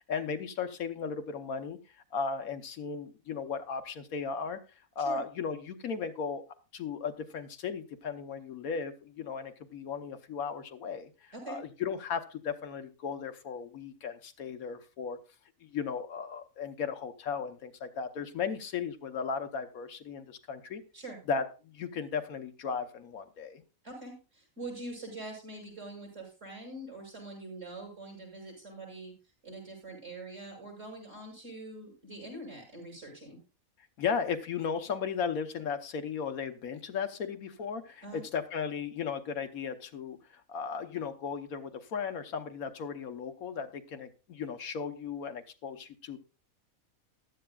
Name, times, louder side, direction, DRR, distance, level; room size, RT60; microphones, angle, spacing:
voice 1, 0.1-1.8 2.1-4.6 5.0-6.4 6.7-15.2 15.6-20.8 21.3-23.6 34.0-46.2, left 6 dB, 80° left, 7 dB, 1.4 m, -36 dB
voice 2, 23.8-29.1 29.4-33.4 38.0-38.2, right 2 dB, 60° right, -2 dB, 6.3 m, -44 dB
14.5 x 11.5 x 2.3 m, 0.32 s
omnidirectional pair, 1.5 m